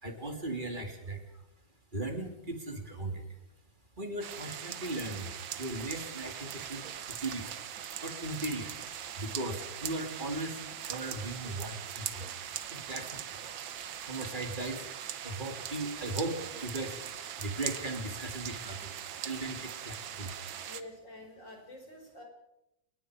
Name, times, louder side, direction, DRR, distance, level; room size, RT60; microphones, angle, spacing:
voice 1, 0.0-1.5 1.9-3.3 4.0-7.5 8.0-12.4 12.7-13.5 14.1-14.9 15.2-17.0 17.4-18.9 19.2-20.5, right 2 dB, 25° right, 5 dB, 3.3 m, -38 dB
sound 1, 4.2-20.8, right 9 dB, 80° right, 1.9 m, -41 dB
voice 2, 20.7-22.2, left 2 dB, 65° left, 2 dB, 6.6 m, -48 dB
29.5 x 19.5 x 5.1 m, 0.85 s
omnidirectional pair, 2.1 m